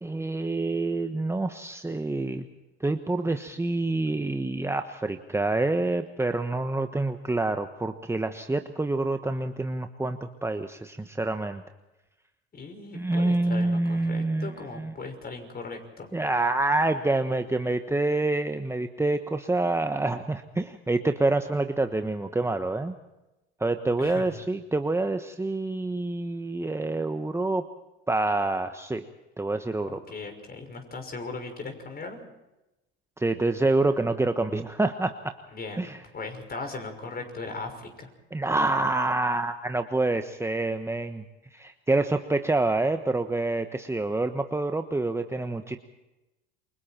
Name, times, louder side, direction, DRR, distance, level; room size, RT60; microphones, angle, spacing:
voice 1, 0.0-2.5 2.8-11.6 12.9-14.9 16.1-22.9 23.6-27.7 28.1-29.1 29.4-30.0 33.2-35.3 35.8-36.0 38.3-41.2 41.5-45.8, right 2 dB, 10° right, 7 dB, 1.3 m, -27 dB
voice 2, 12.5-16.1 24.0-24.2 29.9-32.2 35.5-38.1, left 3 dB, 30° left, 5 dB, 5.9 m, -38 dB
28.5 x 24.0 x 4.5 m, 0.99 s
hypercardioid pair, 80°, 30 cm